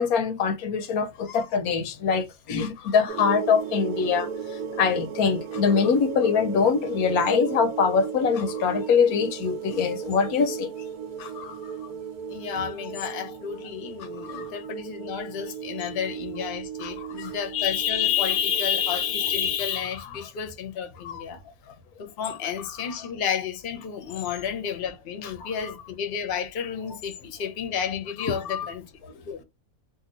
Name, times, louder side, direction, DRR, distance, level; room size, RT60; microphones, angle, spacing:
voice 1, 0.0-4.3 4.8-10.7 11.2-11.6 14.2-14.5 16.8-17.3 21.0-21.2 25.4-25.5 28.2-28.7 29.0-29.1, left 6 dB, 80° left, 1.1 m, -24 dB
sound 1, 3.1-19.6, right 7 dB, 85° right, 1.1 m, -35 dB
voice 2, 12.3-21.4 22.0-28.8 29.2-29.4, left 8 dB, 50° left, 0.8 m, -30 dB
2.8 x 2.6 x 3.7 m
omnidirectional pair, 1.5 m